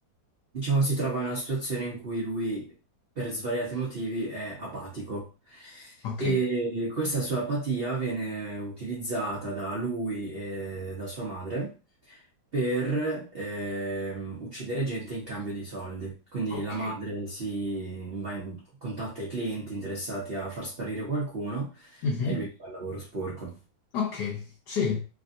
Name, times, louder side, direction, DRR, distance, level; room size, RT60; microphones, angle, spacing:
voice 1, 0.5-2.7 3.2-11.7 12.1-12.2 12.5-23.6, right 2 dB, 80° right, 0.5 m, -32 dB
voice 2, 6.0-6.4 16.5-16.9 22.0-22.4 23.9-25.0, left 5 dB, 70° left, 1.0 m, -30 dB
3.3 x 2.5 x 2.6 m
omnidirectional pair, 2.3 m